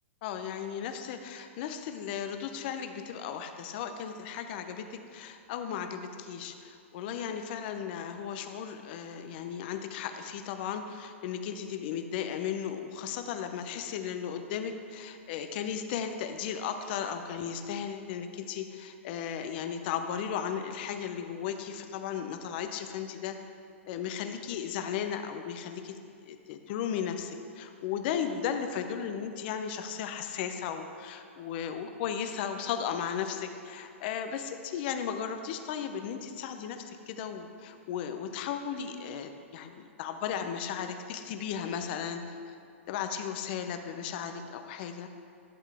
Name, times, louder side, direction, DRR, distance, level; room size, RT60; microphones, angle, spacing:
voice 1, 0.2-23.4 23.9-25.9 26.2-42.6 42.9-45.1, left 8 dB, 50° left, 7 dB, 0.7 m, -35 dB
11.5 x 7.4 x 3.5 m, 2.4 s
hypercardioid pair, 125°, 7 cm